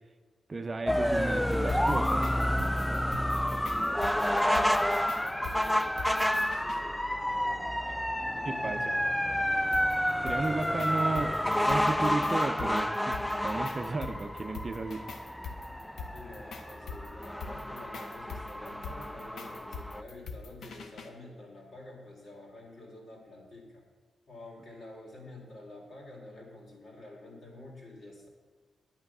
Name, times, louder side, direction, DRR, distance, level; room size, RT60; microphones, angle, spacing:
voice 1, 0.5-2.3 8.4-8.8 10.2-11.3 11.7-13.2 13.4-15.3, right 3 dB, 35° right, 7 dB, 0.7 m, -34 dB
sound 1, 0.9-20.0, equal, 5° left, 0.3 m, -30 dB
sound 2, 1.5-6.8 9.7-21.1, left 4 dB, 70° left, 1.3 m, -43 dB
voice 2, 3.6-7.8 8.2-9.8 10.2-10.7 16.1-23.8 24.3-28.3, left 2 dB, 55° left, -1 dB, 3.8 m, -49 dB
10.5 x 9.1 x 6.1 m, 1.4 s
cardioid pair, 100°, 0 cm